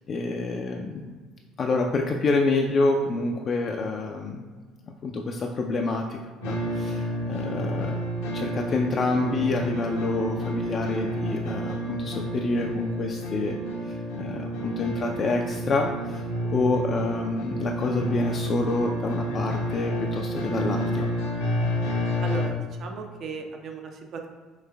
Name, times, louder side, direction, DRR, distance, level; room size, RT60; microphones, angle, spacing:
voice 1, 0.1-1.1 1.6-4.4 5.0-6.2 6.5-8.0 8.3-13.6 13.8-16.2 16.5-21.1, left 3 dB, 45° left, 1 dB, 0.3 m, -27 dB
sound 1, 6.4-22.5, equal, 75° left, 0.7 m, -30 dB
voice 2, 22.2-24.3, right 4 dB, 50° right, 3 dB, 0.6 m, -36 dB
5.1 x 3.1 x 2.2 m, 1.4 s
hypercardioid pair, 60°, 0 cm